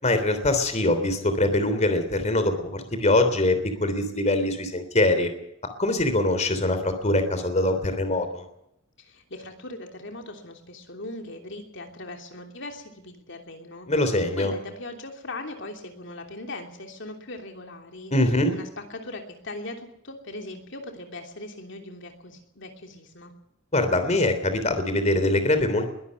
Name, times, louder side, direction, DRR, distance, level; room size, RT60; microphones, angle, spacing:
voice 1, 0.0-5.3 5.8-8.4 13.9-14.5 18.1-18.5 23.7-25.9, left 2 dB, 35° left, 8 dB, 3.3 m, -23 dB
voice 2, 9.0-13.9 14.3-18.1 18.5-23.3, left 2 dB, 65° left, 3 dB, 3.1 m, -39 dB
22.0 x 12.5 x 9.7 m, 0.79 s
head